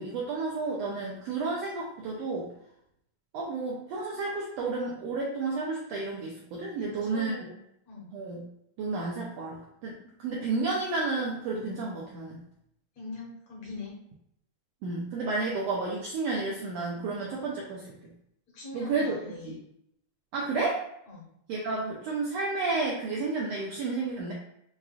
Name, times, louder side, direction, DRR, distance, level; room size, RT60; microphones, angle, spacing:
voice 1, 0.0-2.5 3.3-7.3 8.1-8.4 8.8-12.4 14.8-18.1 18.7-19.1 19.4-19.5 20.3-20.9 21.5-24.3, right 3 dB, 85° right, -3 dB, 1.4 m, -31 dB
voice 2, 6.8-7.6 7.9-8.1 13.0-14.0 18.5-19.6 21.1-21.3, left 3 dB, 65° left, -4 dB, 2.0 m, -42 dB
6.9 x 2.4 x 2.4 m, 0.76 s
omnidirectional pair, 3.6 m